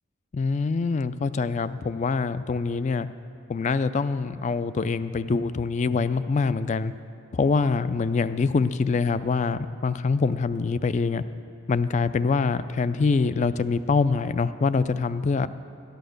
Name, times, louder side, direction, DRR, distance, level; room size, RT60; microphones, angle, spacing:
voice 1, 0.3-3.1 3.5-6.9 7.3-11.2 11.7-15.5, left 4 dB, 35° left, 14 dB, 0.3 m, -24 dB
13.0 x 9.2 x 6.5 m, 2.6 s
head